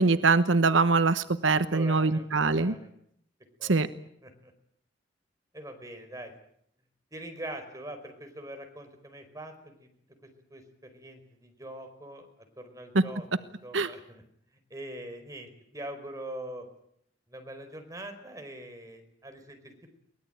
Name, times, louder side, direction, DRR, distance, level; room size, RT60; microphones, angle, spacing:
voice 1, 0.0-2.7 3.6-3.9 12.9-13.0 13.7-13.9, right 3 dB, 85° right, 11 dB, 1.2 m, -23 dB
voice 2, 1.4-2.9 3.6-3.8 4.2-4.5 5.5-6.3 7.1-9.9 10.2-12.3 12.6-14.2 14.7-16.7 17.3-20.0, right 1 dB, 20° right, 5 dB, 4.9 m, -43 dB
23.0 x 20.0 x 9.1 m, 0.70 s
head